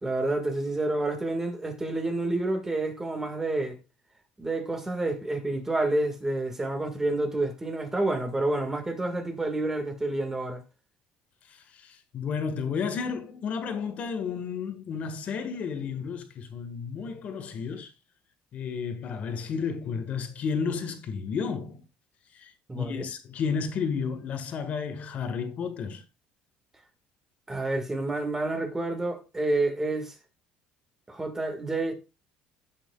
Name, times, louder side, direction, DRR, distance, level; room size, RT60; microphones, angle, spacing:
voice 1, 0.0-3.8 4.4-10.6 22.7-23.1 27.5-30.1 31.1-31.9, right 2 dB, 10° right, 1.8 m, -29 dB
voice 2, 11.8-17.9 18.5-21.8 22.3-26.0, left 6 dB, 45° left, 1.5 m, -32 dB
15.5 x 6.1 x 2.4 m
cardioid pair, 125°, 3 cm